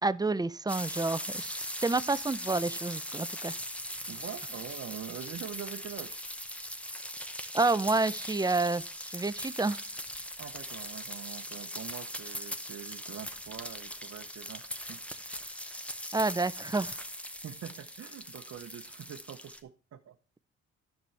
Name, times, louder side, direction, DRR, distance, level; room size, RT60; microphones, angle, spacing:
voice 1, 0.0-3.5 7.5-9.8 16.1-17.0, right 3 dB, 15° right, 0.4 m, -29 dB
sound 1, 0.7-19.6, equal, 5° left, 0.8 m, -40 dB
voice 2, 4.1-6.1 10.4-15.4 17.4-20.2, right 9 dB, 55° right, 0.8 m, -44 dB
10.0 x 6.9 x 3.2 m
cardioid pair, 90°, 30 cm